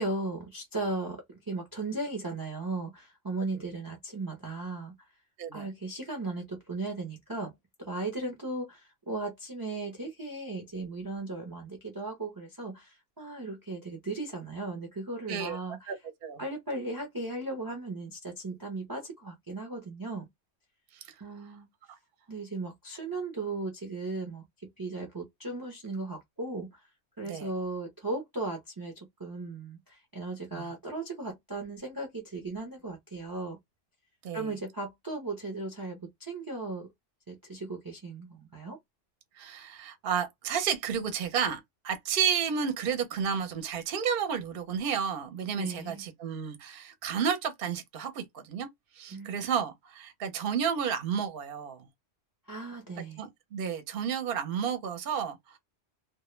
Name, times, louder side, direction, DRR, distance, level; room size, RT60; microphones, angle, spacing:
voice 1, 0.0-5.1 5.5-7.5 7.8-15.9 16.4-20.3 21.2-21.7 22.3-26.8 27.2-33.6 34.3-36.9 37.3-38.8 45.6-46.1 49.1-49.5 52.5-53.2, right 2 dB, 30° right, 0.4 m, -37 dB
voice 2, 39.4-48.7 49.0-51.9 53.2-55.6, right 7 dB, 55° right, 0.7 m, -32 dB
2.1 x 2.1 x 3.0 m
omnidirectional pair, 1.3 m